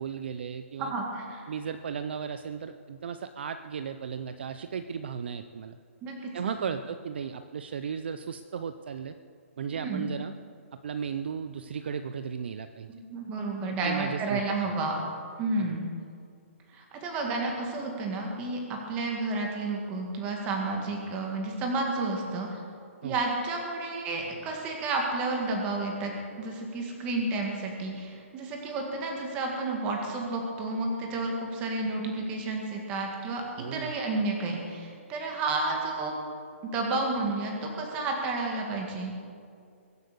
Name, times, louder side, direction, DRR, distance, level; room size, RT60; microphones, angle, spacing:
voice 1, 0.0-0.9 1.5-5.8 6.3-9.1 9.6-10.3 10.8-12.9 13.7-14.7 15.6-15.7 23.0-23.2 33.6-33.9, right 7 dB, 50° right, 10 dB, 0.6 m, -35 dB
voice 2, 0.8-1.4 6.0-6.3 9.7-10.1 12.9-15.0 15.4-15.8 16.7-22.5 23.0-36.2 36.6-39.1, right 3 dB, 15° right, 1 dB, 1.9 m, -31 dB
22.5 x 8.0 x 6.8 m, 2.3 s
hypercardioid pair, 170°, 7 cm